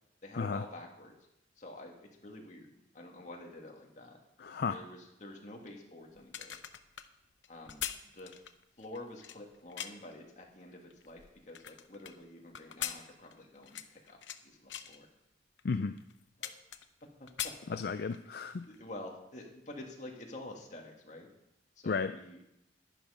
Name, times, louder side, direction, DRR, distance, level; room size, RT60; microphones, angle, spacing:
voice 1, 0.2-1.1 1.6-4.2 4.7-6.6 7.5-7.8 8.1-8.4 8.8-15.1 16.4-16.6 17.2-17.8 18.7-21.3 21.8-22.4, left 1 dB, 40° left, 1 dB, 2.0 m, -48 dB
voice 2, 4.4-4.8 15.6-16.0 17.7-18.6 21.9-22.1, left 5 dB, 60° left, 10 dB, 0.4 m, -33 dB
sound 1, 6.2-10.2 10.7-12.1 12.5-14.4 14.7-15.0 15.6-15.7 16.0-17.0 17.3-18.3 18.6-18.8, left 10 dB, 90° left, 0.7 m, -42 dB
11.5 x 11.0 x 5.0 m, 0.83 s
head